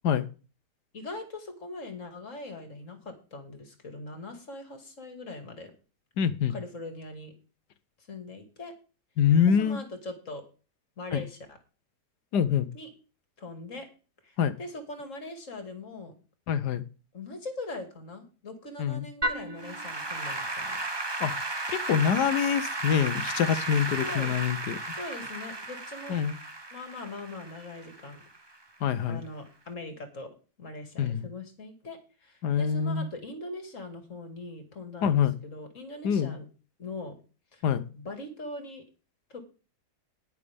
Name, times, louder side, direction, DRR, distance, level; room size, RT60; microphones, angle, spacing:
voice 1, 0.9-5.7 6.5-7.3 8.1-8.7 9.5-10.4 11.0-11.6 12.7-12.9 13.4-13.9 14.2-16.1 17.1-20.8 24.0-24.4 24.9-26.2 26.7-28.2 29.1-30.3 30.6-36.5 36.8-37.2 37.5-37.6 37.9-38.8 39.3-39.4, left 2 dB, 50° left, 6 dB, 2.6 m, -41 dB
voice 2, 6.2-6.5 9.2-9.8 11.1-11.2 12.3-12.7 14.4-14.5 16.5-16.8 18.8-19.1 21.2-21.3 21.7-24.8 26.1-26.4 28.8-29.2 31.0-31.3 32.4-33.1 35.0-35.4 36.0-36.3 37.6-37.8, left 8 dB, 90° left, 14 dB, 1.5 m, -25 dB
Applause / Keyboard (musical), 19.2-28.5, right 2 dB, 20° right, 1.1 m, -34 dB
19.5 x 6.6 x 3.5 m, 0.35 s
omnidirectional pair, 1.7 m